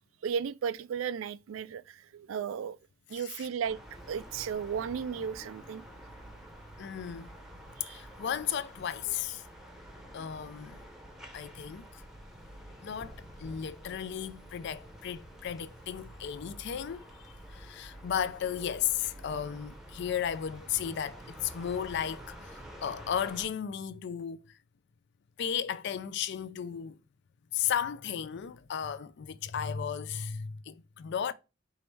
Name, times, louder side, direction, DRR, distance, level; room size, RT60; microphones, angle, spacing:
voice 1, 0.2-2.8 3.1-3.8 4.1-5.8 7.8-8.0, right 7 dB, 80° right, 0.3 m, -35 dB
voice 2, 3.1-3.4 6.8-7.3 7.9-9.5 10.1-10.8 11.3-12.0 12.8-24.6 25.4-27.0 27.5-31.3, left 8 dB, 60° left, 0.4 m, -35 dB
sound 1, 3.6-23.5, equal, 5° right, 0.7 m, -49 dB
4.7 x 3.0 x 3.2 m
head